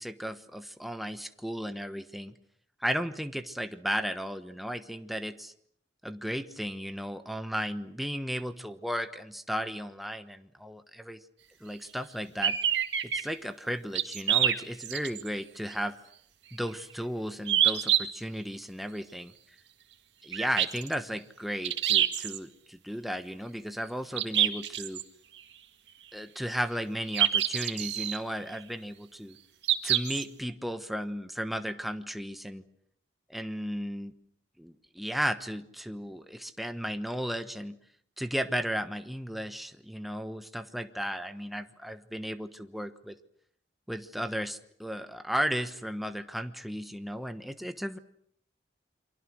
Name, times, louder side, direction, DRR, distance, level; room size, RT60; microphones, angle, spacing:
voice 1, 0.0-2.3 2.8-5.5 6.0-11.2 11.6-12.6 13.0-16.0 16.5-19.3 20.2-25.0 26.1-29.4 29.8-32.6 33.3-34.1 34.6-37.8 38.2-43.1 43.9-48.0, equal, ahead, 8 dB, 1.2 m, -35 dB
sound 1, 12.4-13.2 14.0-15.3 15.7-15.8 17.5-18.0 20.3-20.9 21.6-22.4 24.2-25.0 27.1-28.2 29.6-30.2, right 10 dB, 90° right, 2.0 m, -26 dB
29.0 x 24.0 x 6.4 m, 0.69 s
head